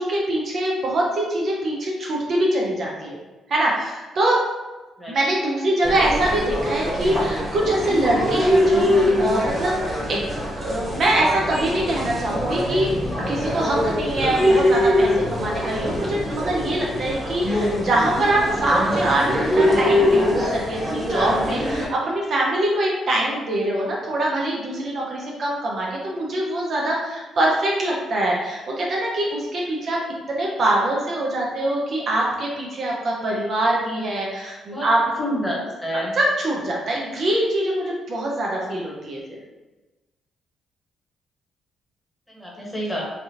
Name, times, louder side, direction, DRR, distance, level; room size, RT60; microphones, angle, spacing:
voice 1, 0.0-3.2 3.5-4.4 5.1-10.2 10.5-30.0 30.3-35.0 36.2-39.4, right 1 dB, 55° right, -3 dB, 0.7 m, -23 dB
sound 1, 5.8-21.9, left 1 dB, 15° right, 1.2 m, -23 dB
voice 2, 35.2-36.2 42.3-43.1, equal, 5° left, -5 dB, 1.1 m, -28 dB
3.3 x 2.4 x 2.8 m, 1.1 s
cardioid pair, 90°, 0 cm